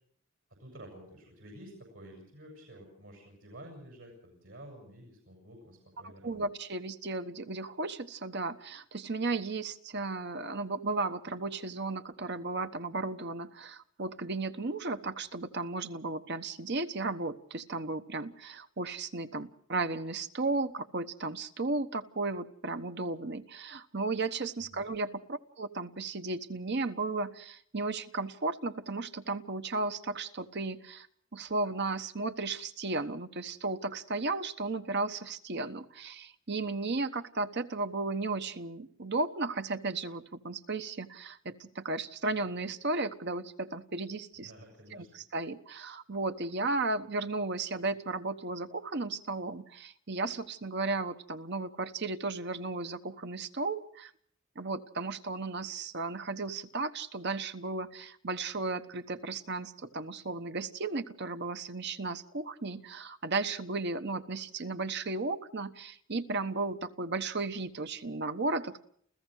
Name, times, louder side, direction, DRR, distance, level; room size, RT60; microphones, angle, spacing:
voice 1, 0.6-6.4 24.7-24.9 44.4-45.1, right 1 dB, 75° right, 1 dB, 7.3 m, -50 dB
voice 2, 6.0-31.1 31.3-44.5 44.9-54.1 54.5-68.8, right 3 dB, 55° right, 9 dB, 1.2 m, -35 dB
29.0 x 15.5 x 6.4 m, 0.64 s
head